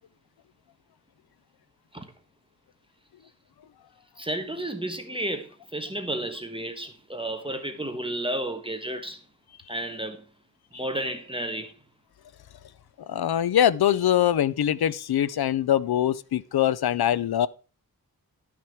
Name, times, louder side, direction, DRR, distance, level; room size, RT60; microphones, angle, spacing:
voice 1, 4.2-9.2 9.7-10.2 10.7-11.7, right 1 dB, 15° right, 1.2 m, -32 dB
voice 2, 13.1-17.5, left 10 dB, 85° left, 0.6 m, -23 dB
12.0 x 5.9 x 4.6 m
wide cardioid pair, 105°, 37 cm